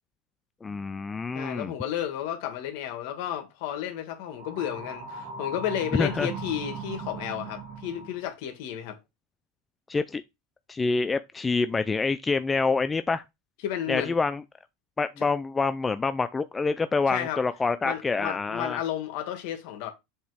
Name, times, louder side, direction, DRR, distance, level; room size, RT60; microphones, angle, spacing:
voice 1, 0.6-1.7 6.0-6.3 9.9-10.2 10.7-13.2 13.9-14.4 15.0-18.8, left 4 dB, 15° left, 0.3 m, -27 dB
voice 2, 1.3-9.0 13.6-14.1 15.2-15.3 17.1-17.4 17.8-19.9, left 10 dB, 65° left, 1.5 m, -32 dB
sound 1, 4.3-8.3, right 4 dB, 45° right, 1.5 m, -38 dB
7.1 x 2.9 x 4.8 m
supercardioid pair, 145°, 0 cm